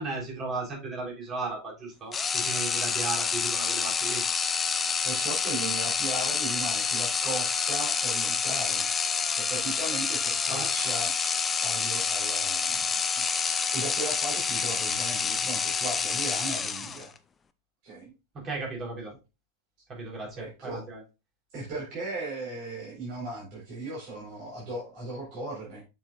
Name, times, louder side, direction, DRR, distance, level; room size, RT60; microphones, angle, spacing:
voice 1, 0.0-4.2 10.5-10.7 18.3-19.1 19.9-21.0, right 3 dB, 25° right, -2 dB, 3.6 m, -35 dB
sound 1, 2.1-17.2, left 5 dB, 20° left, 0.5 m, -28 dB
voice 2, 5.0-8.9 9.4-11.1 11.6-17.1 17.8-18.1 20.4-20.8 21.5-25.8, right 2 dB, 45° right, -5 dB, 3.9 m, -37 dB
7.1 x 6.6 x 2.4 m, 0.28 s
figure-of-eight pair, 90°, 0 cm